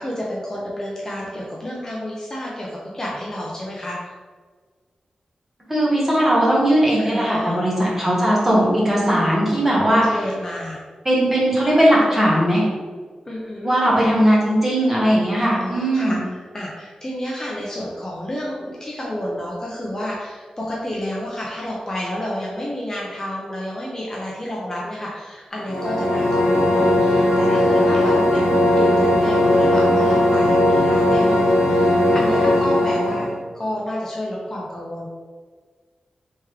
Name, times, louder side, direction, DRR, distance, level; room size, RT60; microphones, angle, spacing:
voice 1, 0.0-4.1 7.0-7.5 10.1-10.8 13.3-13.7 15.5-28.4 28.7-35.1, left 1 dB, 25° left, -4 dB, 0.5 m, -30 dB
voice 2, 5.7-10.0 11.0-12.6 13.6-16.2, right 1 dB, 15° right, -5 dB, 1.0 m, -18 dB
sound 1, 25.5-33.4, left 1 dB, 55° left, 1.4 m, -17 dB
3.5 x 3.1 x 3.2 m, 1.5 s
wide cardioid pair, 160°, 2 cm